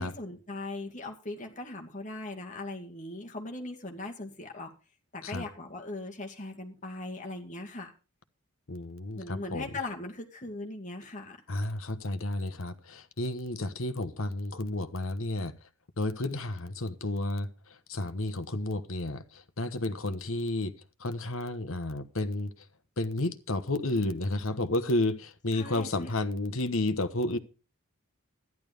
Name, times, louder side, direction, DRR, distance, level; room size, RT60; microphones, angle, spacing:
voice 1, 0.0-4.7 5.1-7.9 9.2-11.4 25.5-26.1, left 2 dB, 35° left, 2.1 m, -39 dB
voice 2, 8.7-9.7 11.5-15.5 16.0-20.7 21.0-22.5 23.0-27.4, left 2 dB, 65° left, 1.2 m, -31 dB
13.0 x 11.0 x 5.1 m
head